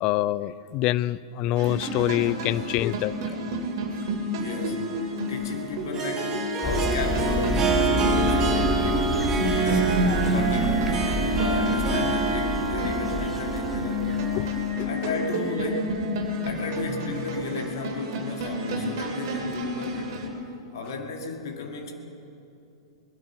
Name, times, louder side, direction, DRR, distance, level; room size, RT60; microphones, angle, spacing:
voice 1, 0.0-3.4 14.3-14.5 14.8-14.9, left 14 dB, 35° left, 19 dB, 0.4 m, -26 dB
sound 1, 1.6-20.3, right 1 dB, 50° right, 2.6 m, -29 dB
voice 2, 4.4-5.0 5.3-14.2 14.9-16.0 16.4-20.3 20.7-21.9, left 4 dB, 55° left, 2 dB, 2.1 m, -33 dB
Harp, 4.6-15.0, right 3 dB, 25° right, 1.9 m, -28 dB
sound 2, 6.6-14.7, left 1 dB, 5° left, 1.9 m, -30 dB
20.5 x 12.5 x 5.6 m, 2.8 s
figure-of-eight pair, 100°, 3 cm